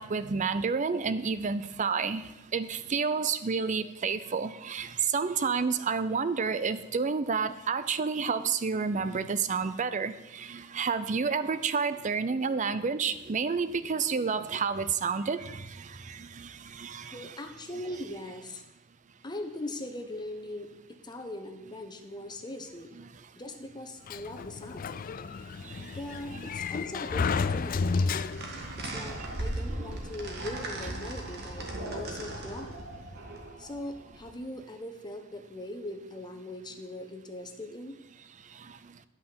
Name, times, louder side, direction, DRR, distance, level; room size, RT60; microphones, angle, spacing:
voice 1, 0.0-17.3 25.6-25.9 26.3-26.5, right 5 dB, 40° right, 13 dB, 0.5 m, -30 dB
voice 2, 17.1-18.6 19.2-23.0 23.4-25.0 25.8-28.2 28.8-32.8 33.6-38.0, left 1 dB, 20° left, 5 dB, 0.9 m, -40 dB
Sliding door, 24.1-28.7, left 4 dB, 45° left, 0.4 m, -31 dB
sound 1, 28.2-34.3, right 1 dB, 55° right, 1.6 m, -38 dB
9.1 x 5.7 x 7.8 m, 0.97 s
head